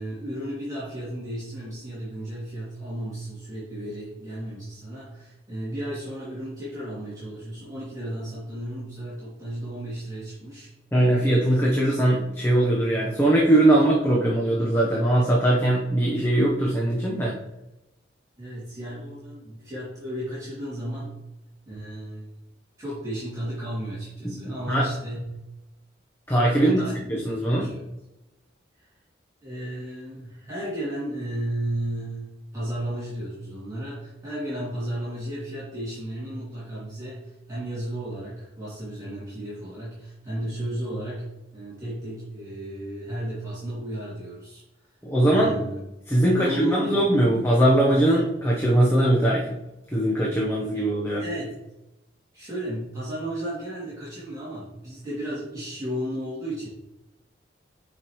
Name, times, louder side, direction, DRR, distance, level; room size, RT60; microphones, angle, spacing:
voice 1, 0.0-10.7 18.4-21.1 21.7-22.3 22.8-25.2 26.5-27.0 27.5-27.8 28.8-28.9 29.4-44.6 45.2-45.8 46.3-47.3 50.7-50.8 51.2-51.5 52.3-56.7, right 1 dB, 20° right, -10 dB, 2.6 m, -34 dB
voice 2, 10.9-17.4 24.2-24.9 26.3-26.8 27.1-27.7 45.0-45.6 46.1-49.6 49.9-51.2, right 1 dB, 15° left, -4 dB, 1.0 m, -21 dB
8.7 x 5.1 x 3.1 m, 0.95 s
head